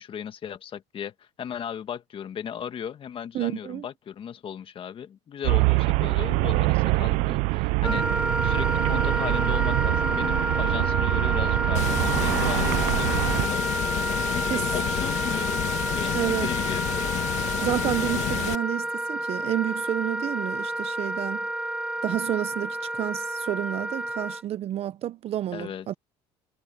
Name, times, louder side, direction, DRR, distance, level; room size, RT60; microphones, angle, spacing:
voice 1, 0.0-13.7 14.3-15.6 15.9-17.1 25.5-25.9, left 8 dB, 45° left, 1.9 m, -36 dB
voice 2, 3.3-3.9 14.5-14.7 16.1-16.5 17.6-21.4 22.0-25.9, right 12 dB, 55° right, 0.9 m, -30 dB
Traffic noise roadway noise, 5.4-13.5, right 24 dB, 75° right, 0.6 m, -24 dB
Wind instrument woodwind instrument, 7.8-24.4, right 1 dB, 5° right, 0.7 m, -29 dB
Water, 11.7-18.5, left 14 dB, 65° left, 1.8 m, -29 dB
supercardioid pair, 90°, 13 cm